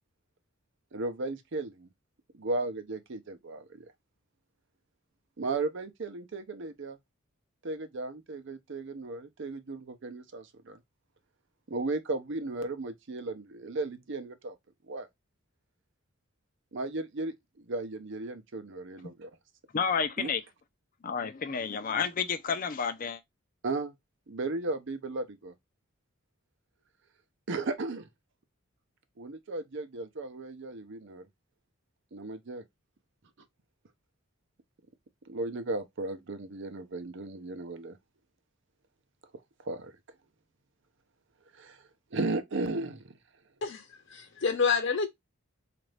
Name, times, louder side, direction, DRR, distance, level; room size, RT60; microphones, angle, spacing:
voice 1, 0.9-1.9 2.3-3.9 5.4-7.0 7.6-10.8 11.7-14.6 14.9-15.1 16.7-19.3 20.2-20.3 23.6-23.9 24.3-25.5 27.5-28.1 29.2-31.3 32.1-32.6 35.3-38.0 39.6-39.9 41.5-41.8 42.1-43.1, right 2 dB, 60° right, 0.6 m, -35 dB
voice 2, 19.7-20.4 21.0-23.2, left 6 dB, 40° left, 0.5 m, -30 dB
voice 3, 43.6-45.1, left 5 dB, 60° left, 1.0 m, -28 dB
3.9 x 2.5 x 3.2 m
head